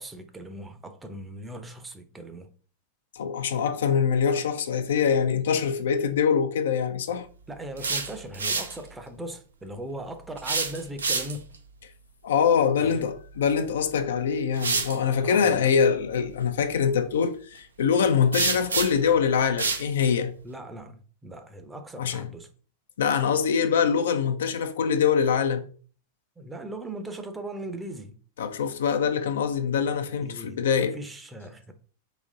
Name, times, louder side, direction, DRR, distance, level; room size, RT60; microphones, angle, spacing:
voice 1, 0.0-2.5 7.5-11.5 12.8-13.1 15.2-15.6 20.4-22.5 26.4-28.2 30.2-31.7, right 1 dB, 10° right, 0.6 m, -39 dB
voice 2, 3.1-7.3 12.2-20.3 22.0-22.3 23.0-25.7 28.4-31.0, left 7 dB, 60° left, 0.4 m, -24 dB
sound 1, 7.6-8.8 10.4-11.5 13.6-13.8 14.5-15.0 18.3-19.1 19.6-19.9, right 4 dB, 75° right, 0.5 m, -28 dB
4.1 x 2.9 x 3.7 m
figure-of-eight pair, 90°, 0 cm